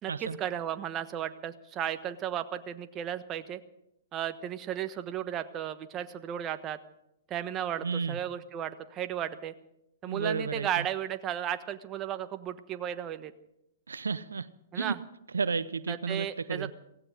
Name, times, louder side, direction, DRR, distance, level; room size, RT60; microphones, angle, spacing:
voice 1, 0.0-3.6 4.1-6.8 7.3-9.5 10.0-13.3 14.7-15.0 15.9-16.7, right 10 dB, 30° right, 10 dB, 1.2 m, -34 dB
voice 2, 7.8-8.2 10.1-10.9 13.9-14.5 14.7-14.9 15.3-16.7, right 5 dB, 85° right, 16 dB, 0.6 m, -32 dB
17.0 x 16.5 x 5.0 m, 0.80 s
hypercardioid pair, 120°, 0 cm